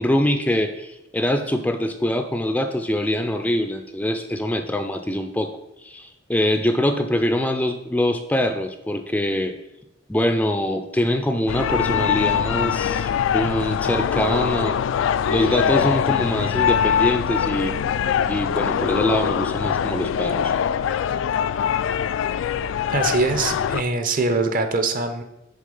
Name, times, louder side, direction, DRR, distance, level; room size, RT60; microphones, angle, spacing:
voice 1, 0.0-5.5 5.8-9.5 10.1-14.8 15.3-17.8 18.3-20.5, left 1 dB, 10° left, 6 dB, 0.4 m, -23 dB
sound 1, 11.5-23.8, left 8 dB, 85° left, 0.3 m, -23 dB
voice 2, 22.9-25.2, right 3 dB, 45° right, 7 dB, 0.7 m, -22 dB
6.4 x 4.1 x 5.4 m, 0.89 s
head